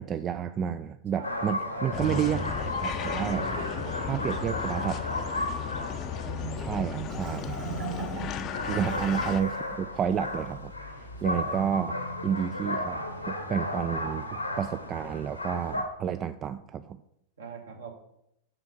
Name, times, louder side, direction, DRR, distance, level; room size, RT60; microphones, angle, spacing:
voice 1, 0.0-2.4 2.7-3.5 4.1-5.3 6.6-7.7 8.7-10.7 11.2-12.0 12.2-17.0, right 8 dB, 30° right, 11 dB, 0.3 m, -30 dB
voice 2, 1.1-2.0 3.1-4.4 7.8-8.1 11.3-11.6 17.4-17.9, right 4 dB, 65° right, 1 dB, 1.9 m, -42 dB
sound 1, 1.2-15.8, left 1 dB, 90° left, 1.3 m, -35 dB
sound 2, 1.9-9.4, left 7 dB, 35° left, 0.6 m, -35 dB
Marimba xylophone, 6.2-9.6, right 7 dB, 45° right, 1.7 m, -39 dB
6.4 x 5.9 x 6.2 m, 0.78 s
figure-of-eight pair, 90°, 0 cm